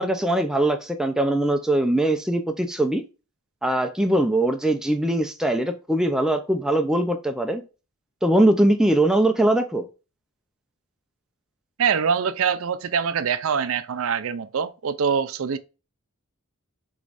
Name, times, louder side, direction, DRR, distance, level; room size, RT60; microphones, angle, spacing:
voice 1, 0.0-3.0 3.6-7.6 8.2-9.9, right 1 dB, 5° right, 0.4 m, -21 dB
voice 2, 11.8-15.6, right 6 dB, 65° right, 0.4 m, -24 dB
4.8 x 3.0 x 2.5 m
head